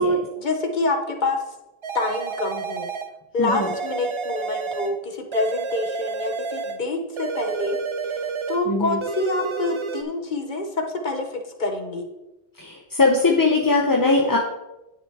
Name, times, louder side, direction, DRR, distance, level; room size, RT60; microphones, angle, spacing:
voice 1, 0.0-1.4 1.9-2.9 3.3-7.8 8.1-8.2 8.5-12.1, left 2 dB, 45° left, 5 dB, 1.0 m, -26 dB
sound 1, 1.8-3.1 3.5-5.0 5.3-6.8 7.2-8.7 9.0-10.0, right 5 dB, 55° right, 0.3 m, -30 dB
voice 2, 3.4-3.7 8.7-9.0 12.6-14.4, left 3 dB, 25° left, -1 dB, 0.6 m, -20 dB
10.5 x 6.3 x 3.5 m, 0.97 s
omnidirectional pair, 1.2 m